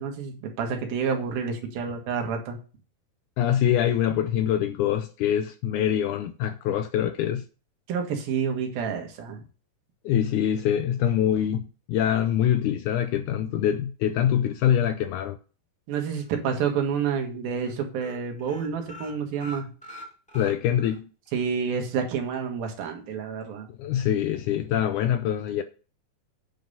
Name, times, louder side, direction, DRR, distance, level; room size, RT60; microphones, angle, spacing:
voice 1, 0.0-2.6 7.9-9.4 15.9-19.7 21.3-23.7, right 6 dB, 80° right, 3.4 m, -29 dB
voice 2, 3.4-7.4 10.1-15.4 20.3-21.1 23.7-25.6, left 10 dB, 85° left, 1.8 m, -24 dB
sound 1, 16.1-16.7 17.1-17.2 17.5-17.7 18.0-21.0 21.3-21.4 21.8-21.9, left 1 dB, ahead, 2.0 m, -44 dB
9.2 x 5.3 x 5.5 m
omnidirectional pair, 4.1 m